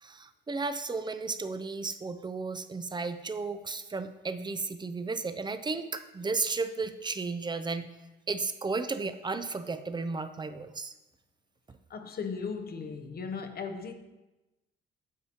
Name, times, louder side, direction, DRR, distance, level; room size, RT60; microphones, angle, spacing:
voice 1, 0.0-7.9 8.3-10.9, right 4 dB, 20° right, 0.5 m, -34 dB
voice 2, 11.9-13.9, left 5 dB, 50° left, 0.9 m, -37 dB
9.4 x 7.3 x 2.9 m
cardioid pair, 90°, 20 cm